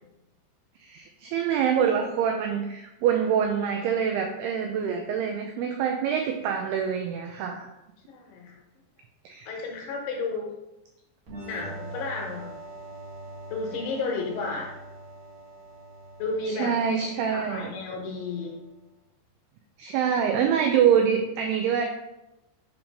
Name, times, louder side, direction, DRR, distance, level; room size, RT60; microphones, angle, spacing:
voice 1, 0.8-7.7 9.3-9.5 16.5-17.7 19.8-21.9, right 8 dB, 90° right, 3 dB, 2.2 m, -25 dB
voice 2, 8.1-8.5 9.5-10.5 11.4-12.5 13.5-14.7 16.2-16.7 17.3-18.5, left 3 dB, 75° left, 0 dB, 2.6 m, -32 dB
sound 1, 11.3-18.7, right 2 dB, 60° right, 1.6 m, -43 dB
7.0 x 2.9 x 5.1 m, 0.94 s
omnidirectional pair, 5.2 m